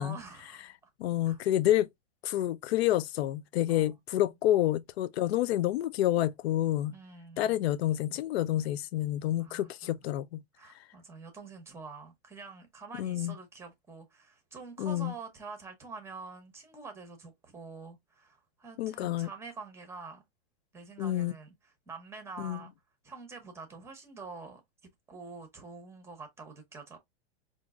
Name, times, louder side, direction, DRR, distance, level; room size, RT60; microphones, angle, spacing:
voice 1, 0.0-0.9 1.2-1.4 3.7-3.9 6.9-7.5 9.4-9.9 10.6-20.2 20.7-22.7 23.0-27.0, right 4 dB, 10° right, 0.8 m, -47 dB
voice 2, 1.0-1.9 2.2-7.0 7.4-10.4 10.7-10.8 13.0-13.3 14.8-15.1 18.8-19.3 21.0-21.3 22.4-22.6, left 13 dB, 80° left, 0.5 m, -28 dB
5.1 x 2.5 x 2.4 m
supercardioid pair, 160°, 31 cm